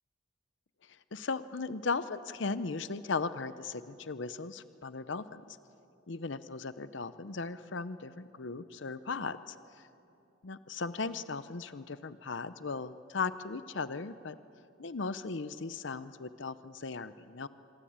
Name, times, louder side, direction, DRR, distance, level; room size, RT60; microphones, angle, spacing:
voice 1, 0.8-5.6 6.1-9.9 10.4-14.4 14.8-17.5, left 4 dB, 60° left, 13 dB, 0.7 m, -37 dB
26.0 x 23.5 x 8.8 m, 2.7 s
head